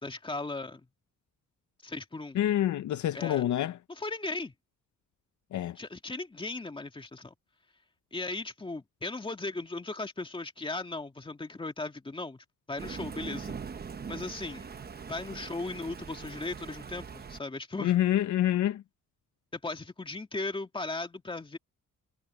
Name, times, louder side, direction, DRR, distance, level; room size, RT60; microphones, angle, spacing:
voice 1, 0.0-0.9 1.8-2.4 3.1-3.4 3.9-4.5 5.8-7.3 8.1-13.5 14.1-14.7 15.1-18.0 19.5-21.6, left 3 dB, 15° left, 2.2 m, -37 dB
voice 2, 2.3-3.8 5.5-5.8 17.8-18.8, left 12 dB, 65° left, 0.6 m, -27 dB
Thunder, 12.8-17.4, right 6 dB, 30° right, 0.9 m, -42 dB
cardioid pair, 130°, 32 cm